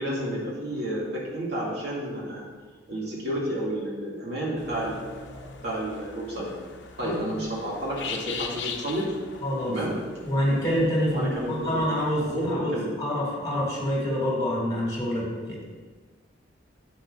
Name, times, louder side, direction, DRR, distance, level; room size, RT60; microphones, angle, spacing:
voice 1, 0.0-2.4 2.9-6.5 7.0-9.1 9.7-9.9 11.1-11.8 12.3-12.9, right 1 dB, 60° right, -6 dB, 2.7 m, -31 dB
sound 1, 4.6-12.5, left 6 dB, 65° left, 0.8 m, -41 dB
voice 2, 7.0-7.4 9.4-9.8 10.2-15.6, equal, 20° left, -4 dB, 2.7 m, -27 dB
10.0 x 8.2 x 2.7 m, 1.4 s
head